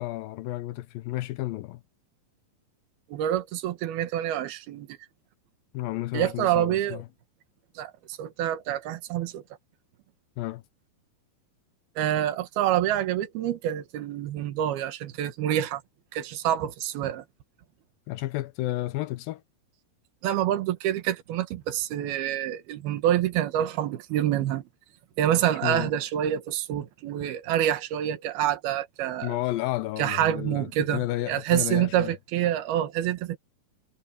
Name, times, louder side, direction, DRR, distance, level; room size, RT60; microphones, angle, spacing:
voice 1, 0.0-1.8 5.7-7.1 10.4-10.6 18.1-19.4 25.6-25.9 29.2-32.2, left 17 dB, 80° left, 2.3 m, -31 dB
voice 2, 3.1-4.9 6.1-7.0 7.8-9.4 12.0-15.8 16.1-17.2 20.2-24.6 25.2-29.4 30.0-33.4, right 11 dB, 80° right, 3.3 m, -27 dB
omnidirectional pair, 4.4 m